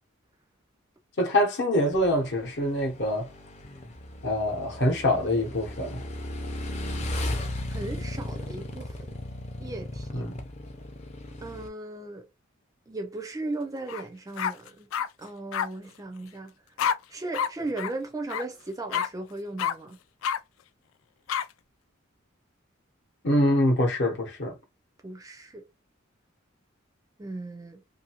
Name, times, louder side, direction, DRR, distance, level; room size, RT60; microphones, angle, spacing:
voice 1, 1.2-3.3 4.2-6.0 10.1-10.4 23.2-24.6, left 1 dB, 60° left, 0.9 m, -25 dB
Motorcycle / Engine, 1.9-11.7, left 1 dB, 35° left, 0.6 m, -36 dB
voice 2, 7.7-9.1 9.6-10.2 11.4-12.3 12.9-14.9 15.2-16.5 17.1-20.0 25.0-25.6 27.2-27.8, right 2 dB, 15° right, 0.4 m, -36 dB
sound 1, 13.9-14.0 14.4-15.1 15.5-15.7 16.8-17.0 17.3-17.5 17.8-17.9 18.3-18.4 18.9-19.1 19.6-19.7 20.2-20.4 21.3-21.4, left 8 dB, 80° left, 0.3 m, -27 dB
2.6 x 2.5 x 2.9 m
head